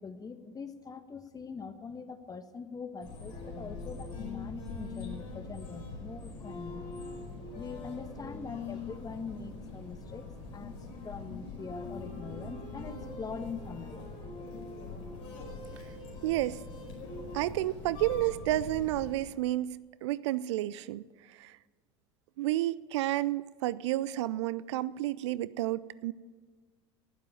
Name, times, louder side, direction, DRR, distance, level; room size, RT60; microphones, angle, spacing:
voice 1, 0.0-6.9 7.5-10.7 11.0-14.1, left 5 dB, 25° left, 10 dB, 1.3 m, -43 dB
sound 1, 3.0-19.1, left 3 dB, 60° left, 4.9 m, -42 dB
voice 2, 16.2-16.6 17.3-21.0 21.3-21.6 22.4-26.1, right 15 dB, 70° right, 19 dB, 0.5 m, -31 dB
18.5 x 7.5 x 9.0 m, 1.4 s
hypercardioid pair, 75°, 15 cm